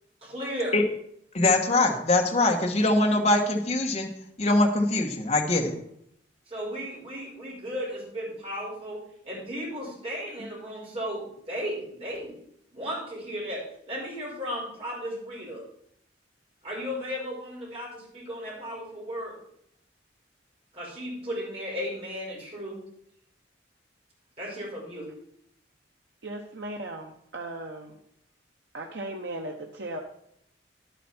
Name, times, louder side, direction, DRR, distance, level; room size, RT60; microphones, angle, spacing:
voice 1, 0.2-0.8 6.5-9.0 9.2-12.3 12.7-13.6 13.9-15.6 16.6-19.3 20.7-22.8 24.4-25.1, equal, 35° right, -4 dB, 5.2 m, -35 dB
voice 2, 1.3-4.1 4.4-5.7, left 2 dB, 40° left, 1 dB, 1.4 m, -23 dB
voice 3, 26.2-28.0 28.7-30.0, right 1 dB, 70° right, 1 dB, 1.0 m, -37 dB
11.0 x 9.2 x 4.4 m, 0.72 s
head